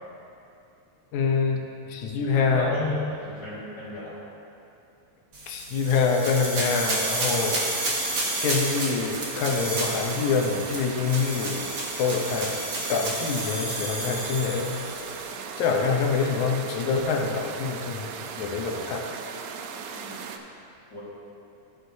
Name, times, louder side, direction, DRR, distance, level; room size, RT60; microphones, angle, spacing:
voice 1, 1.1-2.8 5.5-7.6 8.4-11.7 12.0-12.6 12.9-14.7 15.6-19.1, left 5 dB, 75° left, 1 dB, 2.2 m, -26 dB
voice 2, 2.3-2.9 3.2-4.2 19.9-20.3 20.9-21.0, left 2 dB, 45° left, -8 dB, 1.8 m, -34 dB
sound 1, 5.3-15.3, right 1 dB, 45° right, 1.7 m, -31 dB
sound 2, 6.8-20.4, right 6 dB, 80° right, 2.0 m, -38 dB
16.0 x 6.4 x 2.7 m, 2.7 s
omnidirectional pair, 3.5 m